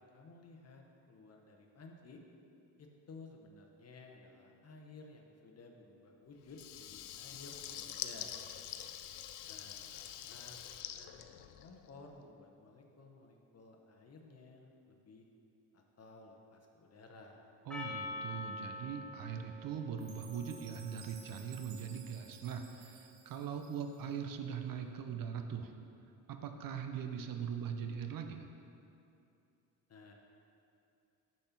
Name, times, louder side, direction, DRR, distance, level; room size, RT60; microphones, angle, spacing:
voice 1, 0.0-2.2 2.8-8.4 9.5-15.2 15.7-17.4 29.9-30.1, left 3 dB, 40° left, 2 dB, 0.9 m, -56 dB
Water tap faucet / Liquid, 6.5-12.0, left 11 dB, 75° left, 0.5 m, -46 dB
Percussion, 17.7-22.2, left 2 dB, ahead, 0.8 m, -47 dB
voice 2, 17.7-25.7 26.3-28.5, right 7 dB, 55° right, 6 dB, 0.7 m, -41 dB
Chime, 20.0-24.2, right 6 dB, 90° right, 0.9 m, -57 dB
6.4 x 4.3 x 5.8 m, 2.7 s
supercardioid pair, 80°, 40 cm